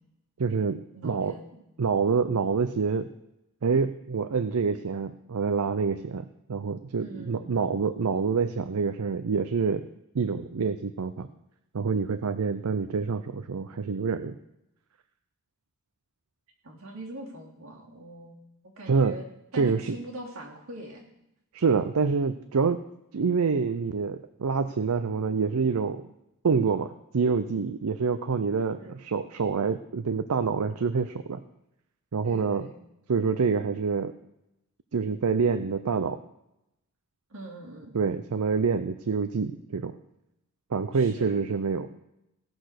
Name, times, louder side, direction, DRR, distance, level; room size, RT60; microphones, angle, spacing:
voice 1, 0.4-1.4 1.8-3.1 3.6-9.8 10.1-11.3 11.7-14.4 18.9-19.2 19.5-20.0 21.5-22.8 23.1-26.0 26.4-31.4 32.1-32.7 33.1-34.1 34.9-36.2 37.9-40.0 40.7-42.0, right 5 dB, 80° right, 10 dB, 0.5 m, -27 dB
voice 2, 0.9-1.6 7.0-7.5 16.6-18.4 18.8-19.3 19.5-21.0 28.8-29.0 32.2-32.8 37.3-37.9 40.9-41.4, right 1 dB, 65° right, -2 dB, 2.9 m, -42 dB
17.0 x 6.1 x 6.5 m, 0.87 s
head